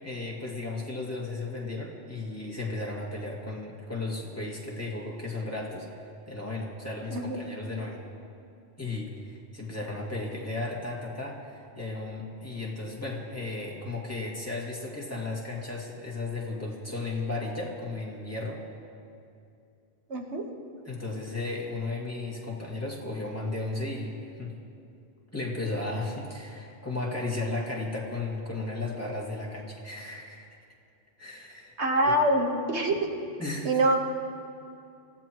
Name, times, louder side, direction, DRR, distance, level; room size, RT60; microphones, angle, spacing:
voice 1, 0.0-5.9 6.3-8.0 8.8-18.6 20.9-24.5 25.3-30.5 31.2-31.7 32.0-32.1 33.4-33.8, left 2 dB, 15° left, -4 dB, 2.3 m, -34 dB
voice 2, 20.1-20.4 31.8-32.9 33.7-34.0, right 1 dB, 80° right, 1 dB, 1.7 m, -24 dB
27.0 x 15.5 x 3.1 m, 2.5 s
omnidirectional pair, 1.1 m